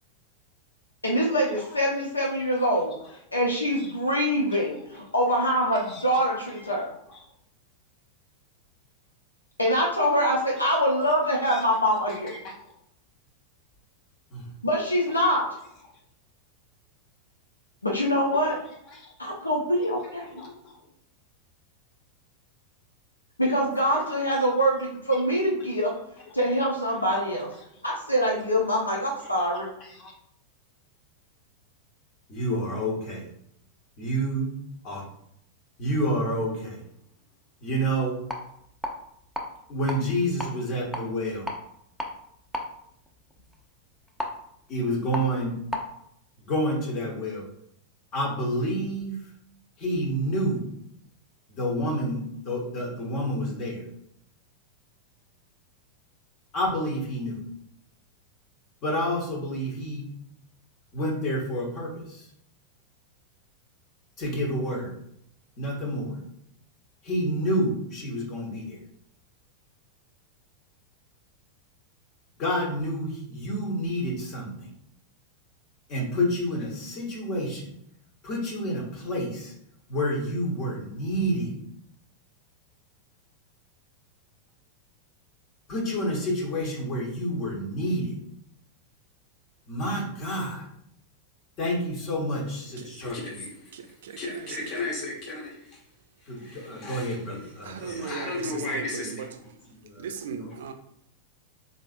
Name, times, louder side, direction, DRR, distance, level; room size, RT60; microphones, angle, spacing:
voice 1, 1.0-2.9 3.3-6.9 9.6-12.3 14.6-15.5 17.8-18.6 19.2-20.4 23.4-25.9 26.3-27.5 27.8-29.7, equal, 85° left, 0.6 m, -24 dB
voice 2, 32.3-33.2 34.0-34.5 34.8-35.0 35.8-36.8 37.6-38.2 39.7-41.5 44.7-45.6 46.4-47.4 48.1-49.2 49.8-50.7 51.5-53.8 56.5-57.4 58.8-60.1 60.9-62.2 64.2-64.9 65.6-66.1 67.0-68.8 72.4-74.5 75.9-77.7 78.2-79.5 79.9-81.5 85.7-88.1 89.7-90.6 91.6-93.5 94.2-95.6 96.3-99.3 99.8-100.1 100.3-100.5, equal, 35° left, 1.2 m, -29 dB
sound 1, 38.1-45.9, left 1 dB, 5° left, 0.6 m, -38 dB
voice 3, 93.7-95.0 97.6-99.4 100.0-100.7, right 6 dB, 60° right, 0.4 m, -38 dB
4.0 x 3.1 x 2.5 m
figure-of-eight pair, 90°, 0 cm